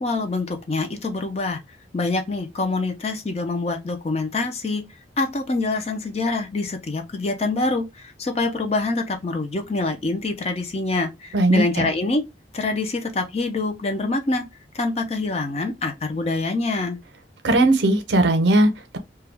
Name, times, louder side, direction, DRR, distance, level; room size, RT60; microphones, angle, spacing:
voice 1, 0.0-1.6 1.9-4.8 5.2-12.2 12.5-14.5 14.7-17.0, left 3 dB, 35° left, 0.5 m, -25 dB
voice 2, 11.3-11.9 17.4-19.0, right 1 dB, 80° right, 0.6 m, -18 dB
2.3 x 2.2 x 3.2 m
head